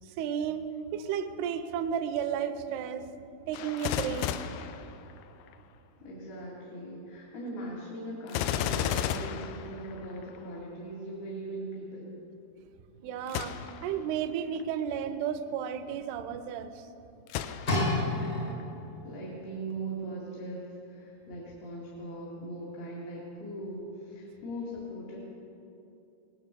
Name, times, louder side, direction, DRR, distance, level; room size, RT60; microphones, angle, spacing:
voice 1, 0.1-3.1 3.5-4.3 13.0-16.9, right 8 dB, 80° right, 10 dB, 2.6 m, -33 dB
Gunshot gunfire, 3.5-5.5 8.3-10.4 13.3-13.9 14.6-14.7 17.3-18.1 18.6-18.7, left 9 dB, 90° left, 2.7 m, -33 dB
voice 2, 6.0-12.1 18.0-25.2, right 1 dB, 70° left, -6 dB, 4.1 m, -40 dB
sound 1, 17.7-18.9 19.7-19.8, left 2 dB, 40° left, 1.4 m, -29 dB
18.5 x 10.5 x 6.8 m, 2.9 s
omnidirectional pair, 4.6 m